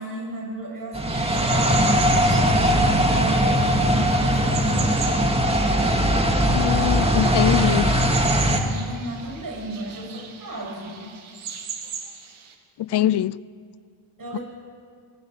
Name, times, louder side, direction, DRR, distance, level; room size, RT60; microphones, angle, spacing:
voice 1, 0.0-1.9 2.2-5.0 8.5-11.1 12.9-13.0 14.2-14.4, right 2 dB, 45° right, 0 dB, 7.3 m, -34 dB
sound 1, 0.9-8.6, equal, 10° right, 2.4 m, -20 dB
sound 2, 1.1-12.5, right 7 dB, 85° right, 2.4 m, -37 dB
voice 2, 6.5-7.9 12.8-13.4 14.3-14.4, left 12 dB, 60° left, 21 dB, 0.6 m, -22 dB
21.5 x 17.0 x 7.4 m, 2.3 s
cardioid pair, 75°, 48 cm